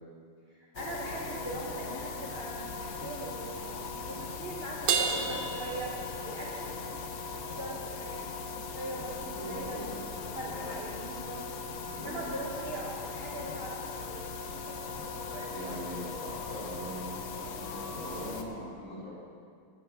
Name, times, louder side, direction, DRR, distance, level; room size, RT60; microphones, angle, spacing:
voice 1, 0.5-15.8, right 1 dB, 45° right, -3 dB, 0.7 m, -42 dB
sound 1, 0.8-18.4, left 4 dB, 70° left, 1.0 m, -39 dB
Crash cymbal, 4.9-6.6, right 6 dB, 70° right, 1.0 m, -31 dB
voice 2, 5.1-5.4 9.1-10.8 11.8-12.3 15.5-19.1, equal, 35° left, -9 dB, 3.3 m, -42 dB
9.5 x 7.7 x 4.9 m, 2.1 s
omnidirectional pair, 2.4 m